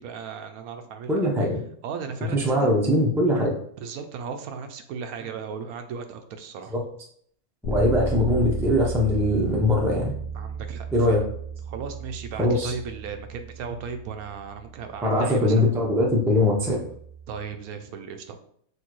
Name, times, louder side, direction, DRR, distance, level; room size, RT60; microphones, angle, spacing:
voice 1, 0.0-1.2 1.8-2.7 3.8-6.7 10.3-11.3 11.7-15.7 17.3-18.4, right 6 dB, 75° right, 7 dB, 1.0 m, -36 dB
voice 2, 1.1-1.6 2.3-3.5 6.7-6.8 7.6-10.1 10.9-11.2 12.4-12.7 15.0-16.8, left 1 dB, 5° right, -2 dB, 0.4 m, -21 dB
Bass guitar, 7.6-17.4, right 3 dB, 75° left, 1.2 m, -34 dB
6.4 x 2.6 x 3.0 m, 0.64 s
omnidirectional pair, 1.6 m